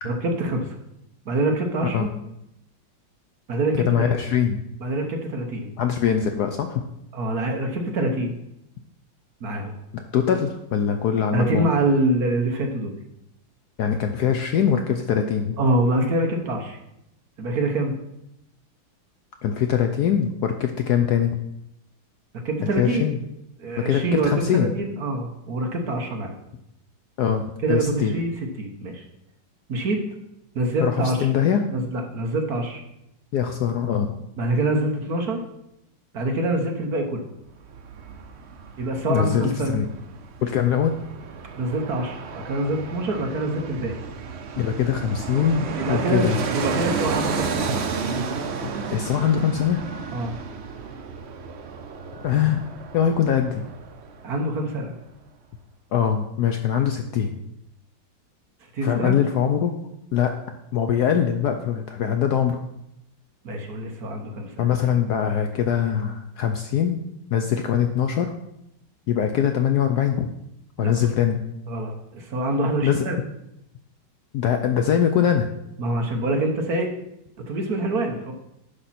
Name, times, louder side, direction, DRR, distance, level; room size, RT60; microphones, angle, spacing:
voice 1, 0.0-0.7 1.3-2.1 3.5-4.1 4.8-5.7 7.1-8.4 9.4-9.7 11.3-12.9 15.6-16.8 17.4-17.9 22.4-23.0 23.6-26.3 27.6-28.3 28.6-29.0 29.7-30.0 30.5-31.3 31.7-32.8 34.4-35.4 36.1-37.3 38.8-39.8 41.5-42.2 42.4-44.0 45.8-46.3 46.5-47.7 50.1-50.3 54.2-54.9 58.7-59.2 63.4-64.6 70.8-71.1 71.7-73.2 75.8-76.9 77.5-78.3, right 2 dB, 55° right, 3 dB, 1.4 m, -25 dB
voice 2, 3.7-4.6 5.8-6.8 10.1-11.7 13.8-15.6 19.4-21.4 22.6-23.2 23.7-24.7 27.2-28.1 30.8-31.7 33.3-34.1 39.0-39.9 40.4-40.9 44.6-46.4 48.9-49.8 52.2-52.7 52.9-53.6 55.9-57.3 58.8-59.8 60.1-60.4 60.7-62.6 64.6-67.0 67.3-68.3 69.1-70.3 70.8-71.4 72.8-73.1 74.3-75.5, left 8 dB, 70° left, 6 dB, 1.0 m, -22 dB
Fixed-wing aircraft airplane, 37.5-54.4 54.7-54.8, right 5 dB, 90° right, 0.5 m, -32 dB
10.0 x 6.0 x 4.2 m, 0.82 s
omnidirectional pair, 2.2 m